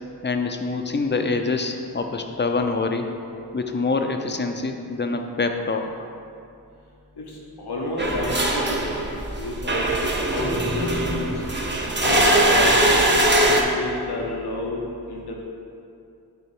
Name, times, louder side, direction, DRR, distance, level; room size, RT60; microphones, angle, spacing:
voice 1, 0.2-3.1 3.5-5.9, left 3 dB, 30° left, 5 dB, 0.6 m, -25 dB
voice 2, 7.2-8.8 9.4-11.2 12.0-14.8 15.1-15.4, left 1 dB, 80° left, -2 dB, 1.0 m, -30 dB
sound 1, 8.0-13.6, right 1 dB, 30° right, 0.8 m, -21 dB
9.1 x 3.0 x 4.5 m, 2.5 s
cardioid pair, 45°, 38 cm